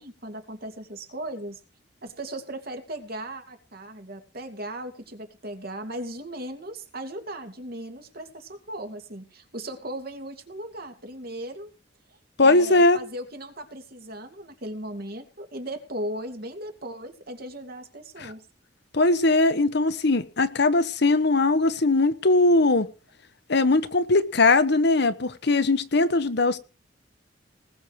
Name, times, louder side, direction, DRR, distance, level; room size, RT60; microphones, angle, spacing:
voice 1, 0.0-1.6 2.0-11.7 12.4-18.5, right 1 dB, 55° right, 2.7 m, -37 dB
voice 2, 12.4-13.0 18.2-18.3 18.9-22.9 23.5-26.6, left 2 dB, 65° left, 1.2 m, -20 dB
20.0 x 7.4 x 4.9 m
head